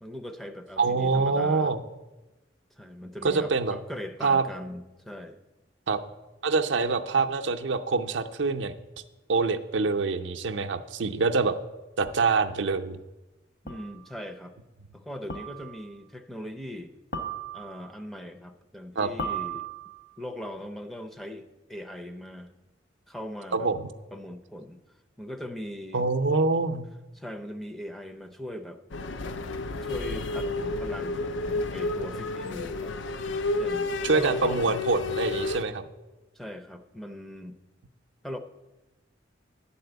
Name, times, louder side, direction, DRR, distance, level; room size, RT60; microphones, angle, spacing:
voice 1, 0.0-1.7 2.8-5.4 13.6-14.5 14.9-17.0 17.5-19.7 20.2-22.5 23.1-23.7 24.1-24.8 25.2-26.1 27.2-28.8 29.8-33.0 33.6-34.7 36.3-37.6 38.2-38.4, equal, ahead, 5 dB, 0.5 m, -40 dB
voice 2, 0.8-1.8 3.2-3.8 4.2-4.4 5.9-6.0 6.4-8.7 9.3-11.6 12.0-13.0 19.0-19.1 23.5-23.9 25.9-26.9 34.0-35.9, right 4 dB, 75° right, 6 dB, 0.6 m, -25 dB
sound 1, 12.1-12.2 13.7-14.0 15.3-15.9 17.1-17.9 19.2-20.1, right 4 dB, 50° left, 1.1 m, -36 dB
sound 2, 28.9-35.6, left 3 dB, 90° left, 0.5 m, -31 dB
11.0 x 4.3 x 7.9 m, 1.1 s
head